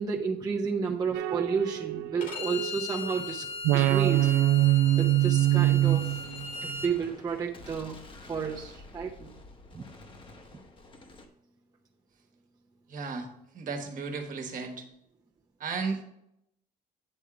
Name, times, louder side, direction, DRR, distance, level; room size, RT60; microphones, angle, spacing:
voice 1, 0.0-3.5 3.7-4.3 5.0-6.1 6.6-8.0 8.3-9.3 9.7-9.9, right 6 dB, 20° right, -1 dB, 0.7 m, -31 dB
sound 1, 1.1-3.2 3.6-6.8, right 15 dB, 90° right, 0.4 m, -25 dB
Bowed string instrument, 2.2-6.9, left 3 dB, 55° left, 1.9 m, -38 dB
Gunshot gunfire, 5.4-11.3, left 2 dB, 30° left, 1.1 m, -50 dB
voice 2, 12.9-13.3 13.5-14.8 15.6-16.0, right 4 dB, 50° right, 4 dB, 1.4 m, -34 dB
8.7 x 3.6 x 5.9 m, 0.78 s
cardioid pair, 110°, 17 cm